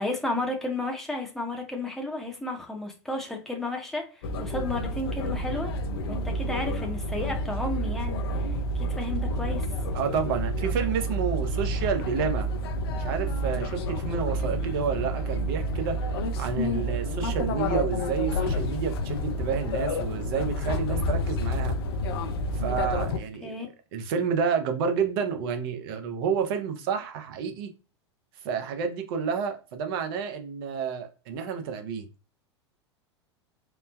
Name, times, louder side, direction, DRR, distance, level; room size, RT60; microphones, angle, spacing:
voice 1, 0.0-5.7 6.1-8.2 8.7-9.6 23.4-23.7, left 2 dB, ahead, 0.7 m, -32 dB
sound 1, 4.2-23.2, equal, 60° left, 0.4 m, -29 dB
voice 2, 9.9-12.5 12.9-21.8 22.5-23.5 23.9-27.7 28.4-32.1, right 6 dB, 50° right, 0.6 m, -30 dB
3.1 x 2.0 x 2.2 m
figure-of-eight pair, 90°, 15 cm